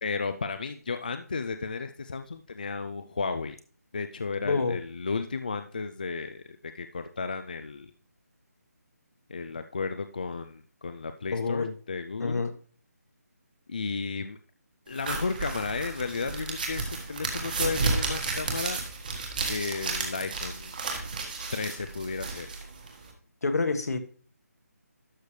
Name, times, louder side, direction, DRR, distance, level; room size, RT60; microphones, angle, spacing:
voice 1, 0.0-3.6 3.9-7.9 9.3-12.4 13.7-14.4 14.9-18.8 19.5-20.8 21.5-22.5, left 4 dB, 30° left, 8 dB, 0.3 m, -33 dB
voice 2, 4.4-4.8 11.3-11.7 12.2-12.5 23.4-24.0, left 4 dB, 70° left, 7 dB, 1.3 m, -27 dB
sound 1, 14.9-23.1, right 4 dB, 30° right, 1.6 m, -32 dB
12.0 x 6.6 x 3.1 m, 0.43 s
hypercardioid pair, 175°, 9 cm